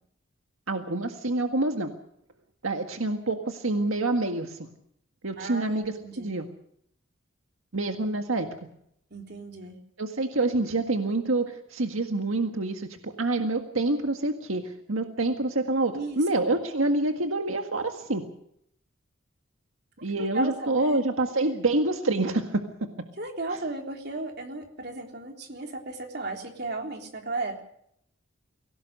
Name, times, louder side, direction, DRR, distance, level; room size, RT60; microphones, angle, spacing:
voice 1, 0.7-1.9 2.6-4.7 5.2-6.5 7.7-8.5 10.0-18.2 20.0-22.6, right 2 dB, 85° right, 5 dB, 1.8 m, -27 dB
voice 2, 5.4-6.3 9.1-9.8 15.9-16.6 20.2-21.0 21.4-21.5 23.2-27.6, right 2 dB, 50° right, 3 dB, 3.6 m, -35 dB
24.0 x 17.5 x 6.7 m, 0.71 s
head